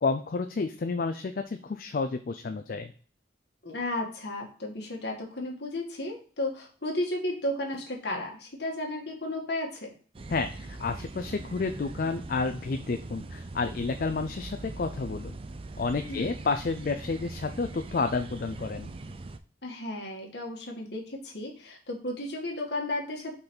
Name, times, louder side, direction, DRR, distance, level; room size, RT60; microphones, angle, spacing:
voice 1, 0.0-2.9 10.3-15.3 15.8-18.9, left 4 dB, 50° left, 7 dB, 0.4 m, -30 dB
voice 2, 3.6-9.9 16.1-16.3 19.6-23.3, left 1 dB, 65° left, 0 dB, 1.6 m, -34 dB
sound 1, 10.1-19.4, right 2 dB, 30° right, 0.4 m, -41 dB
5.4 x 4.0 x 4.3 m, 0.42 s
head